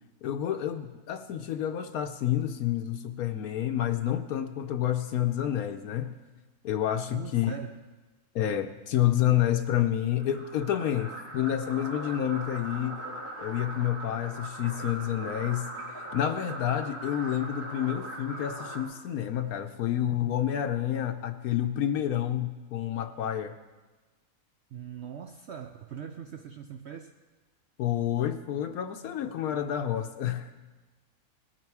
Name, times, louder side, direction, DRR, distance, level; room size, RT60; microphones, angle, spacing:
voice 1, 0.2-6.2 6.6-7.5 8.3-13.0 13.4-15.7 16.1-23.6 27.8-30.5, left 11 dB, 80° left, 6 dB, 1.1 m, -29 dB
voice 2, 7.1-7.8 24.7-27.1, right 8 dB, 60° right, 6 dB, 0.7 m, -41 dB
sound 1, 10.2-18.8, right 1 dB, 80° right, 3.5 m, -40 dB
19.0 x 9.0 x 4.6 m, 1.2 s
omnidirectional pair, 1.5 m